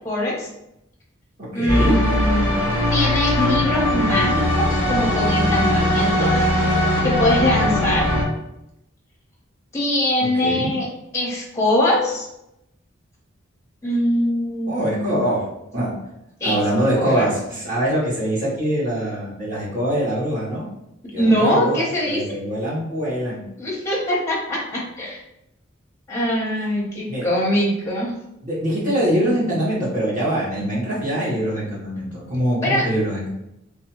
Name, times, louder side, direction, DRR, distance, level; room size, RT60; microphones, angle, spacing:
voice 1, 0.0-0.5 1.5-6.5 7.0-8.1 9.7-10.9 11.1-12.3 13.8-15.3 16.4-16.6 16.9-17.3 21.2-22.2 23.6-25.2 26.1-28.1 32.6-32.9, left 1 dB, 15° left, -4 dB, 0.6 m, -22 dB
voice 2, 1.5-2.0 10.4-10.7 14.7-15.4 15.7-15.9 16.4-20.6 21.1-23.4 27.1-27.3 28.4-33.3, right 1 dB, 40° right, -7 dB, 1.1 m, -23 dB
sound 1, 1.7-8.2, left 1 dB, 75° right, 1.4 m, -20 dB
2.6 x 2.2 x 2.8 m, 0.85 s
head